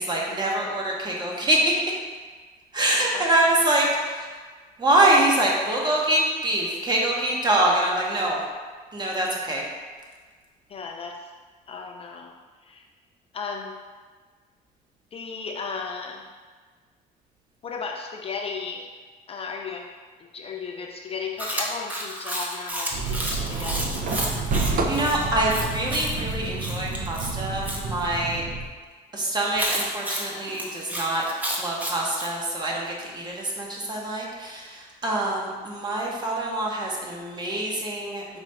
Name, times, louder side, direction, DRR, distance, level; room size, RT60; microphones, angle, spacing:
voice 1, 0.0-1.7 2.7-4.3 4.8-8.4 8.9-9.6 24.6-28.4 29.1-31.2 31.6-38.4, right 1 dB, 25° right, -3 dB, 1.0 m, -25 dB
voice 2, 10.7-11.3 11.7-12.3 12.6-12.8 13.3-13.8 15.1-16.3 17.6-18.9 19.3-19.9 20.2-24.0, left 5 dB, 35° left, 2 dB, 0.4 m, -35 dB
Chewing mastication, 21.4-27.8 29.6-32.3, equal, 10° right, 0.7 m, -31 dB
sound 1, 22.9-28.7, right 3 dB, 55° right, 0.5 m, -29 dB
5.0 x 2.5 x 4.2 m, 1.5 s
cardioid pair, 110°, 17 cm